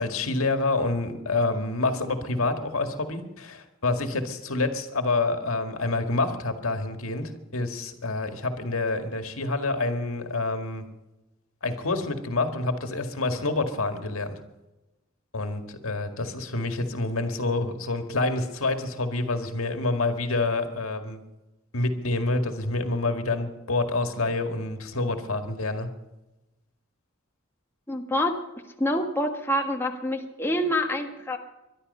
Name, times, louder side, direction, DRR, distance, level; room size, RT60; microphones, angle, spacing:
voice 1, 0.0-10.9 11.6-14.4 15.3-21.2 21.7-25.9, left 2 dB, 85° left, 6 dB, 1.9 m, -27 dB
voice 2, 27.9-28.4 28.8-31.4, equal, 10° left, 2 dB, 1.5 m, -26 dB
22.0 x 12.0 x 5.5 m, 1.0 s
head